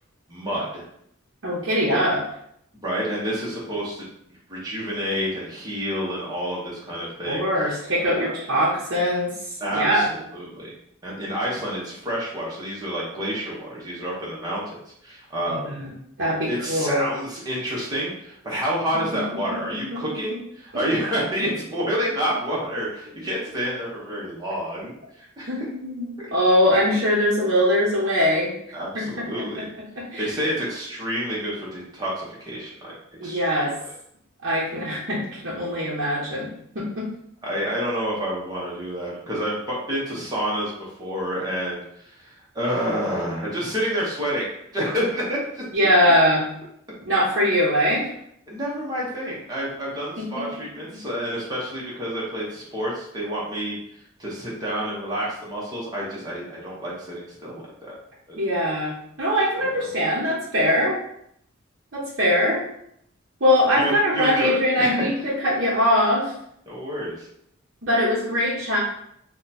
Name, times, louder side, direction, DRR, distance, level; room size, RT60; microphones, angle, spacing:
voice 1, 0.3-0.8 1.9-2.0 2.8-4.0 4.5-7.4 8.0-8.3 9.6-10.7 11.0-14.6 15.0-15.8 16.5-24.9 25.2-25.5 28.7-29.7 30.2-32.9 33.2-33.7 37.4-44.4 44.7-45.6 48.5-53.8 54.2-58.0 58.3-58.4 63.8-65.1 66.7-67.3, equal, 20° right, -6 dB, 0.9 m, -29 dB
voice 2, 1.4-2.2 7.3-10.1 15.5-15.9 16.2-17.0 19.9-20.0 20.7-20.8 25.5-28.5 28.9-29.6 30.0-30.3 33.2-33.7 34.4-37.1 45.7-46.5 47.0-48.1 50.2-50.4 50.9-51.0 58.4-61.0 61.9-62.6 63.4-66.3 67.8-68.8, equal, 55° right, -8 dB, 0.7 m, -22 dB
2.9 x 2.2 x 4.0 m, 0.72 s
head